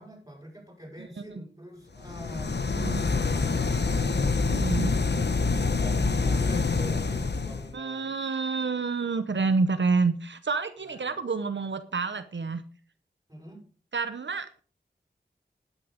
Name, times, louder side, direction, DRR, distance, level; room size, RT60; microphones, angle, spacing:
voice 1, 0.0-5.3 5.6-8.1 10.8-11.1 13.3-13.6, equal, 20° right, 1 dB, 6.9 m, -45 dB
voice 2, 1.0-1.4 2.7-3.0 4.5-4.9 7.7-12.6 13.9-14.6, right 4 dB, 85° right, 10 dB, 0.8 m, -28 dB
sound 1, 2.0-7.7, left 4 dB, 70° left, 1.0 m, -26 dB
12.0 x 10.0 x 5.1 m, 0.41 s
wide cardioid pair, 45°, 18 cm